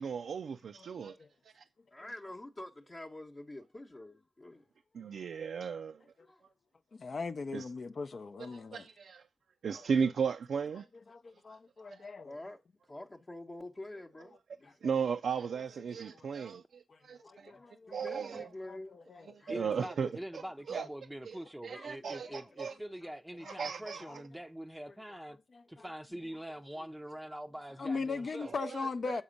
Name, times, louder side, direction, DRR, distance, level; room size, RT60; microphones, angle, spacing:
voice 1, 0.0-1.2 1.4-1.7 4.9-6.0 7.5-7.7 8.4-9.3 9.6-10.9 11.9-12.1 14.8-17.5 17.9-18.5 19.3-20.4 20.7-20.9 21.3-22.7 23.4-24.0 28.4-29.2, right 6 dB, 85° right, 0.3 m, -36 dB
voice 2, 1.9-4.6 6.3-6.4 12.2-12.6 12.9-14.8 17.2-19.0 19.4-19.5 21.7-22.5 26.7-26.9, left 1 dB, 35° left, 0.8 m, -47 dB
voice 3, 6.9-8.8 11.1-12.4 16.9-17.0 17.2-18.0 18.7-19.5 23.4-23.6 25.5-25.6 27.8-29.2, left 4 dB, 60° left, 0.4 m, -39 dB
voice 4, 19.5-25.4 25.7-28.5, right 1 dB, 5° right, 0.5 m, -44 dB
7.2 x 4.2 x 5.1 m
cardioid pair, 60°, 0 cm